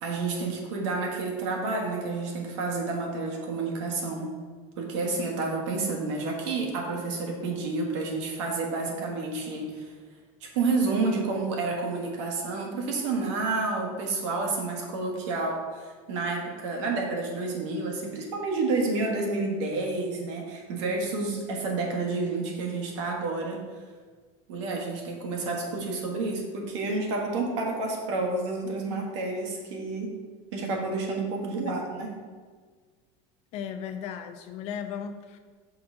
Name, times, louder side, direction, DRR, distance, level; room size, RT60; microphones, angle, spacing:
voice 1, 0.0-4.3 4.8-9.9 10.4-23.6 24.5-30.2 30.5-32.1, right 3 dB, 80° right, 1 dB, 1.5 m, -30 dB
voice 2, 33.5-35.4, left 8 dB, 45° left, 7 dB, 0.6 m, -36 dB
5.8 x 3.9 x 5.6 m, 1.5 s
supercardioid pair, 150°, 15 cm